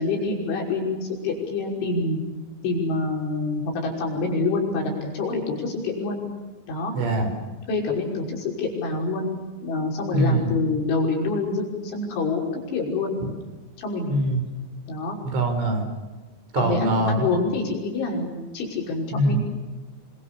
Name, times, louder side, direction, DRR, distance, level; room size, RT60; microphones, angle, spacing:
voice 1, 0.0-2.2 2.6-6.2 6.7-6.9 7.7-9.3 9.6-13.2 13.8-14.1 14.9-15.2 16.5-19.4, left 3 dB, 75° left, 0 dB, 8.2 m, -26 dB
voice 2, 7.0-7.3 10.1-10.5 14.1-14.4 15.2-15.9 16.5-17.2 19.1-19.4, right 1 dB, 75° right, 7 dB, 6.9 m, -22 dB
29.0 x 25.0 x 7.1 m, 1.2 s
omnidirectional pair, 5.6 m